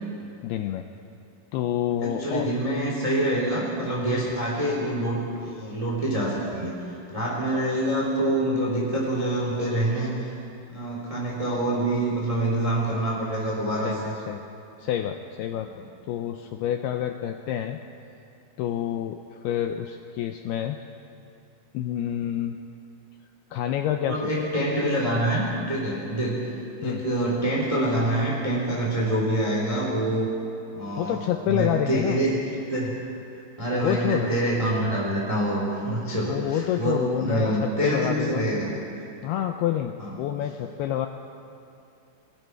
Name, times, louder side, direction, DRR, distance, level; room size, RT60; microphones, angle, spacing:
voice 1, 0.4-0.9 1.5-2.5 13.8-14.4 14.8-15.7 16.1-17.8 18.6-19.2 19.4-20.8 21.7-22.6 23.5-24.5 26.8-27.0 31.0-32.2 33.7-34.3 36.3-38.5 39.2-41.1, left 11 dB, 85° left, 6 dB, 2.3 m, -28 dB
voice 2, 2.0-10.3 10.7-14.2 24.0-26.5 26.8-30.3 30.7-31.2 31.5-32.4 32.7-33.0 33.6-38.7 40.0-40.1, right 1 dB, 10° right, -3 dB, 2.4 m, -26 dB
29.5 x 22.0 x 4.7 m, 2.8 s
omnidirectional pair, 5.4 m